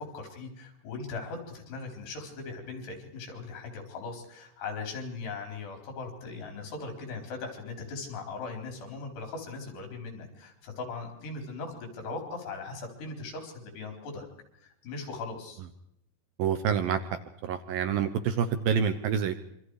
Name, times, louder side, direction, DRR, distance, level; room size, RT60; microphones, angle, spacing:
voice 1, 0.0-14.2 14.6-15.6, left 4 dB, 70° left, 4 dB, 6.3 m, -39 dB
voice 2, 16.4-17.0 17.4-19.4, right 7 dB, 70° right, 10 dB, 2.4 m, -27 dB
26.5 x 25.0 x 4.9 m, 0.79 s
omnidirectional pair, 5.0 m